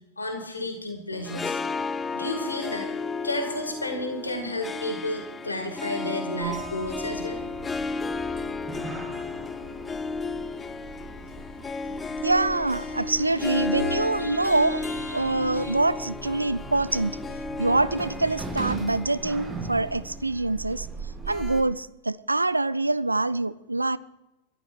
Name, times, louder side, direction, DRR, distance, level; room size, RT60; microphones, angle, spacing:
voice 1, 0.2-1.6 2.1-2.9 3.2-7.4, left 1 dB, 80° left, 2.4 m, -31 dB
Harp, 1.1-20.5, left 4 dB, 15° left, 0.5 m, -34 dB
Sliding door, 6.4-21.6, right 3 dB, 15° right, 1.9 m, -39 dB
voice 2, 12.2-17.2 17.6-24.0, right 2 dB, 85° right, 0.4 m, -25 dB
13.5 x 11.0 x 6.6 m
figure-of-eight pair, 90°, 0 cm